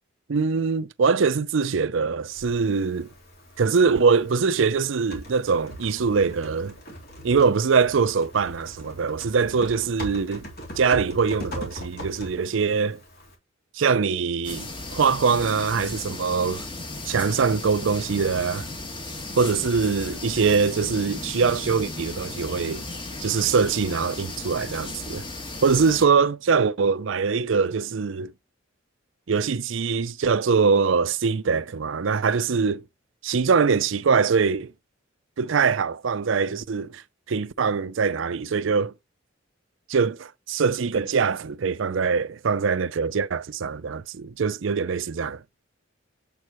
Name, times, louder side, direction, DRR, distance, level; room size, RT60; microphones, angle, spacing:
voice 1, 0.3-3.1 3.6-6.7 7.2-10.5 10.8-13.0 13.7-16.7 17.1-18.7 19.4-22.8 23.2-25.2 25.6-28.3 29.3-32.8 33.2-34.7 35.4-37.0 37.3-38.9 39.9-45.4, right 5 dB, 70° right, 0.5 m, -23 dB
Typing, 2.3-13.3, equal, 50° left, 3.5 m, -41 dB
sound 1, 14.4-26.0, left 2 dB, 25° left, 1.7 m, -35 dB
7.6 x 6.3 x 3.0 m
head